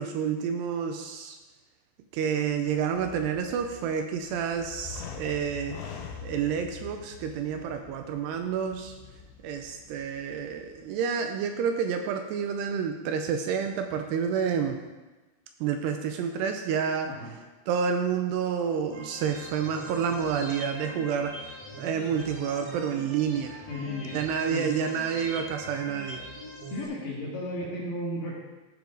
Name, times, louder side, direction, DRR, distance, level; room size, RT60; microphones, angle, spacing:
voice 1, 0.0-1.4 2.1-5.8 6.2-8.9 9.4-14.8 15.6-17.1 17.7-21.3 21.8-23.6 24.1-26.3, right 7 dB, 80° right, 5 dB, 2.6 m, -29 dB
sound 1, 2.4-10.9, left 6 dB, 85° left, 3.1 m, -45 dB
sound 2, 18.9-26.9, equal, 60° right, 1.7 m, -42 dB
voice 2, 23.7-24.2 24.5-24.7 26.7-28.4, left 1 dB, 60° left, -4 dB, 2.9 m, -34 dB
14.0 x 5.0 x 3.9 m, 1.2 s
omnidirectional pair, 5.0 m